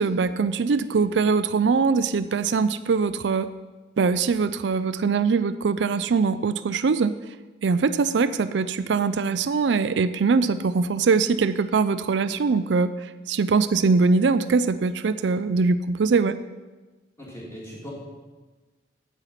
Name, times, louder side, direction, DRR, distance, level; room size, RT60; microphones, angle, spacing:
voice 1, 0.0-3.5 4.0-7.1 7.6-16.4, right 4 dB, 75° right, 12 dB, 0.4 m, -22 dB
voice 2, 17.2-17.9, equal, 15° left, -5 dB, 3.0 m, -39 dB
9.1 x 8.2 x 5.7 m, 1.2 s
head